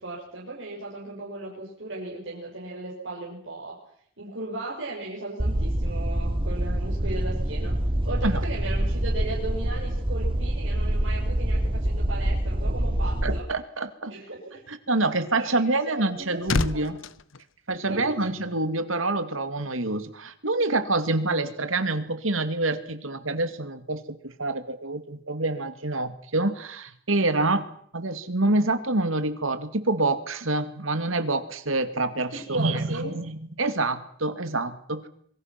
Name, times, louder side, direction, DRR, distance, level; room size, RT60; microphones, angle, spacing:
voice 1, 0.0-3.8 4.2-13.5 14.1-14.6 15.4-16.9 17.9-18.3 32.3-33.2, right 2 dB, 65° right, -4 dB, 6.5 m, -37 dB
sound 1, 5.4-13.4, right 1 dB, 25° right, 1.1 m, -26 dB
voice 2, 13.2-14.1 14.7-17.0 17.7-27.6 27.9-35.0, right 2 dB, 80° right, 10 dB, 2.5 m, -27 dB
sound 2, 15.7-18.4 18.7-19.0, left 3 dB, 75° left, 1.0 m, -31 dB
26.5 x 24.0 x 6.1 m, 0.65 s
head